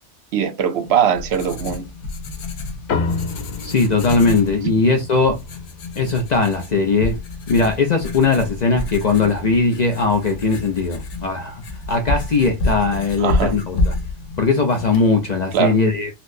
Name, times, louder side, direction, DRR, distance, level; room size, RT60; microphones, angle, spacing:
voice 1, 0.3-1.8 13.2-13.6 15.5-15.8, right 8 dB, 65° right, 0.8 m, -20 dB
Writing, 0.8-15.6, left 2 dB, 85° left, 1.1 m, -29 dB
sound 1, 2.9-7.6, left 4 dB, 65° left, 0.9 m, -31 dB
voice 2, 3.6-5.4 6.0-7.2 7.5-11.6 11.9-13.9 14.4-16.1, left 4 dB, 50° left, 0.6 m, -19 dB
4.3 x 2.0 x 2.6 m
omnidirectional pair, 1.2 m